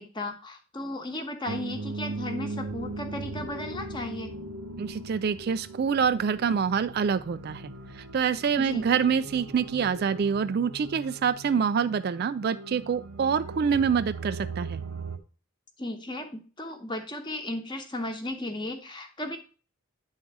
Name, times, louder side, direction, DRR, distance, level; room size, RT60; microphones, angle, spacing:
voice 1, 0.0-4.3 8.6-8.9 15.8-19.4, left 1 dB, 20° left, 5 dB, 1.0 m, -35 dB
sound 1, 1.5-15.2, right 3 dB, 90° right, 0.9 m, -39 dB
voice 2, 4.8-7.6 8.1-14.8, right 6 dB, 45° right, 13 dB, 0.3 m, -26 dB
9.7 x 3.9 x 4.7 m, 0.37 s
head